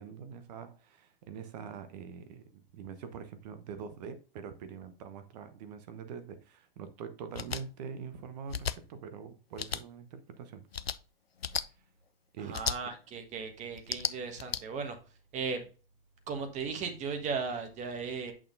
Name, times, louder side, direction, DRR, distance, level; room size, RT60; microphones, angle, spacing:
voice 1, 0.0-10.6 11.6-11.7 12.3-12.6, right 6 dB, 45° right, 0.9 m, -44 dB
sound 1, 7.3-7.6 8.5-8.8 9.6-9.8 10.7-11.0 11.4-11.6 12.5-12.8 13.8-14.6, left 7 dB, 90° left, 0.5 m, -34 dB
voice 2, 12.5-15.0 15.3-15.6 16.3-18.3, right 5 dB, 25° right, 1.4 m, -36 dB
8.5 x 6.2 x 2.6 m
figure-of-eight pair, 105°, 30 cm